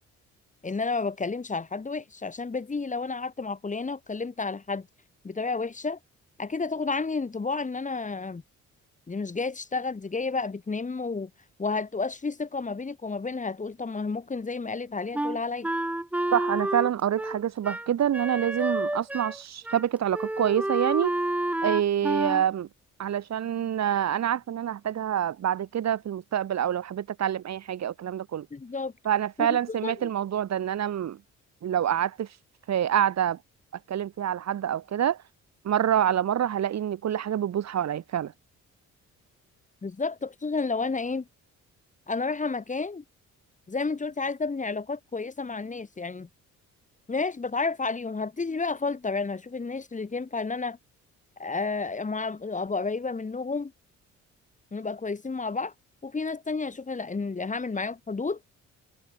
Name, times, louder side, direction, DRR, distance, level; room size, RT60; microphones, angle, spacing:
voice 1, 0.6-4.9 5.2-6.0 6.4-8.4 9.1-11.3 11.6-15.7 28.5-28.9 29.4-29.9 39.8-41.3 42.1-43.0 43.7-46.3 47.1-50.8 51.4-53.7 54.7-55.7 56.0-58.4, left 4 dB, 25° left, 2.3 m, -31 dB
Wind instrument woodwind instrument, 15.1-19.4 19.7-19.9 20.1-22.4, right 1 dB, 5° right, 0.6 m, -29 dB
voice 2, 16.3-21.1 21.6-22.7 23.0-28.5 29.0-31.2 31.6-32.3 32.7-33.4 33.9-35.2 35.6-38.3, right 10 dB, 60° right, 2.5 m, -26 dB
cardioid pair, 90°, 30 cm